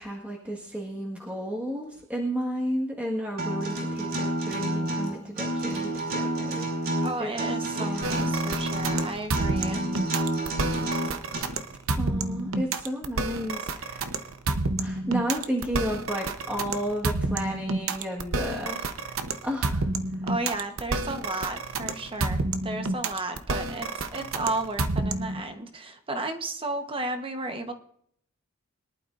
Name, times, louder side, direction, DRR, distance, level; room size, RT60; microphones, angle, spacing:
voice 1, 0.0-7.3 7.7-8.3 12.0-14.2 14.8-19.9, equal, 5° right, -2 dB, 1.6 m, -33 dB
Acoustic guitar, 3.4-11.4, right 1 dB, 45° right, 5.6 m, -29 dB
voice 2, 7.0-9.8 20.2-27.7, right 2 dB, 25° right, 7 dB, 1.1 m, -33 dB
sound 1, 8.0-25.4, right 3 dB, 65° right, 0.9 m, -29 dB
22.5 x 11.5 x 2.6 m, 0.66 s
head